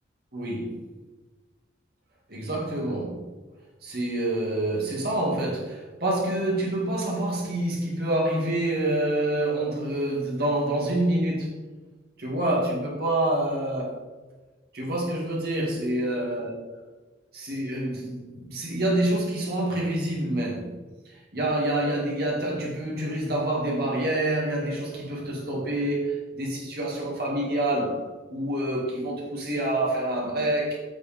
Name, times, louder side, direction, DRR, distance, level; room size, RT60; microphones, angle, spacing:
voice 1, 0.3-0.8 2.3-3.2 3.8-11.5 12.2-14.0 14.7-16.5 17.3-20.7 21.1-28.0 28.3-30.8, right 1 dB, 55° right, -3 dB, 2.2 m, -27 dB
8.3 x 6.3 x 3.6 m, 1.3 s
head